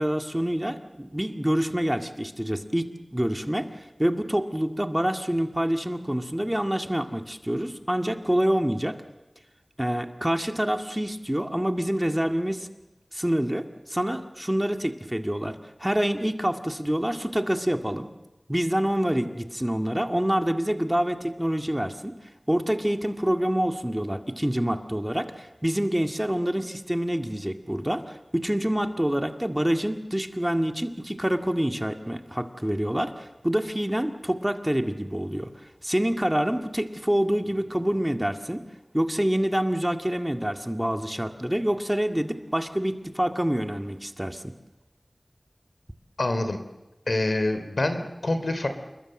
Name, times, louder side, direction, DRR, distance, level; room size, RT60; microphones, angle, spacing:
voice 1, 0.0-9.0 9.8-12.7 13.1-18.1 18.5-22.1 22.5-35.5 35.8-38.6 38.9-44.4, equal, 15° right, 6 dB, 2.0 m, -26 dB
voice 2, 46.2-46.6 47.1-48.7, left 2 dB, 80° left, 8 dB, 3.0 m, -26 dB
28.0 x 21.5 x 7.6 m, 1.0 s
wide cardioid pair, 50°, 0 cm